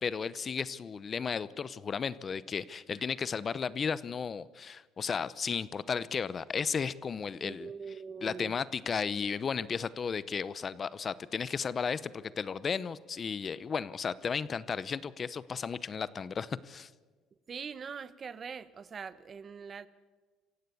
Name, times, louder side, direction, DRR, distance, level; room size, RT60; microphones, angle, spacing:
voice 1, 0.0-7.7 8.2-16.9, left 6 dB, 35° left, 18 dB, 0.7 m, -34 dB
voice 2, 7.4-8.5 17.5-19.9, right 6 dB, 35° right, 15 dB, 1.1 m, -42 dB
26.5 x 16.5 x 8.5 m, 1.4 s
cardioid pair, 120°, 0 cm